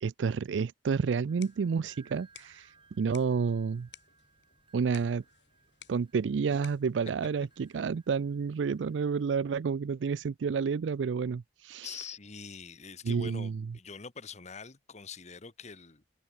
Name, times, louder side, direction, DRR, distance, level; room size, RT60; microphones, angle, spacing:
voice 1, 0.0-3.9 4.7-5.2 5.9-12.0 13.0-13.6, right 5 dB, 80° right, 0.4 m, -30 dB
sound 1, 1.1-8.1, left 9 dB, 70° left, 6.1 m, -58 dB
sound 2, 1.3-9.6, right 4 dB, 30° right, 3.8 m, -64 dB
voice 2, 11.8-16.0, left 5 dB, 40° left, 1.2 m, -44 dB
head